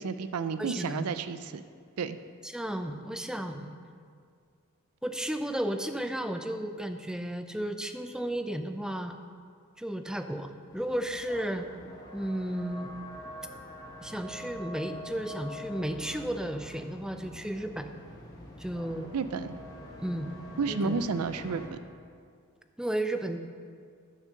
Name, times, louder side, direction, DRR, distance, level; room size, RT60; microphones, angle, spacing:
voice 1, 0.0-1.6 2.0-2.2 19.1-19.6 20.6-21.8, right 4 dB, 85° right, 12 dB, 0.5 m, -31 dB
voice 2, 0.6-1.1 2.4-3.8 5.0-9.2 9.8-11.7 12.1-12.9 14.0-17.9 18.6-19.1 20.0-20.4 20.7-21.0 22.8-23.4, right 1 dB, 5° right, 7 dB, 0.5 m, -33 dB
sound 1, 10.7-21.7, left 1 dB, 20° left, 1.8 m, -45 dB
10.5 x 6.4 x 6.3 m, 2.2 s
head